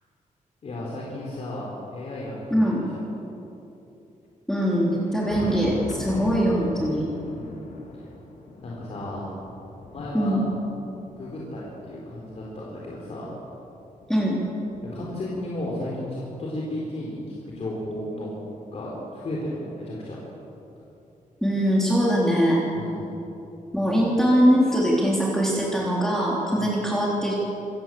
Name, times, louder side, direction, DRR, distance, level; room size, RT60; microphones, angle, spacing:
voice 1, 0.6-3.0 7.3-7.7 8.6-9.3 9.9-10.4 11.2-13.3 14.9-18.3 18.7-20.2 22.7-23.1 26.5-26.7, left 1 dB, 50° left, -5 dB, 4.0 m, -34 dB
voice 2, 2.5-2.9 4.5-7.0 10.1-10.4 14.1-14.4 21.4-22.6 23.7-27.3, equal, 5° left, -5 dB, 3.4 m, -22 dB
Thunder, 4.8-13.3 14.0-15.7 16.8-16.9 17.5-17.6 19.5-19.6 20.9-21.0 22.6-22.7, left 2 dB, 85° left, 3.2 m, -40 dB
26.5 x 15.5 x 7.7 m, 2.9 s
wide cardioid pair, 170°, 14 cm